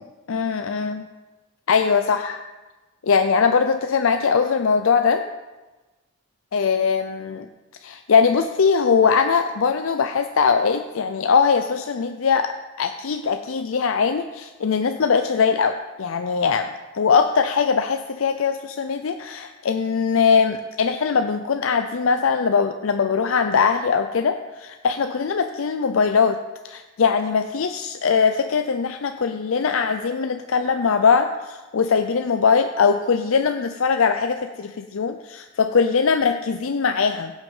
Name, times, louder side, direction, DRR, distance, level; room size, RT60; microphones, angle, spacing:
voice 1, 0.3-1.0 1.7-2.4 3.0-5.3 6.5-7.5 7.8-12.5 12.8-16.7 16.9-26.4 26.6-37.3, left 5 dB, 70° left, 7 dB, 0.5 m, -21 dB
16.5 x 6.1 x 5.5 m, 1.2 s
head